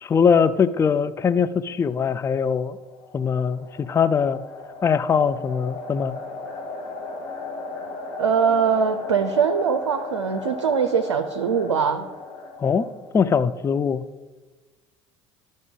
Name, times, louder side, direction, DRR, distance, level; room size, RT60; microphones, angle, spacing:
voice 1, 0.0-2.8 3.1-4.4 4.8-6.1 12.6-12.8 13.1-14.0, left 6 dB, 20° left, 14 dB, 0.4 m, -21 dB
sound 1, 2.6-13.4, left 3 dB, 65° left, 2.0 m, -36 dB
voice 2, 8.2-12.1, right 6 dB, 80° right, 7 dB, 0.5 m, -22 dB
12.0 x 5.2 x 3.7 m, 1.2 s
figure-of-eight pair, 65°, 15 cm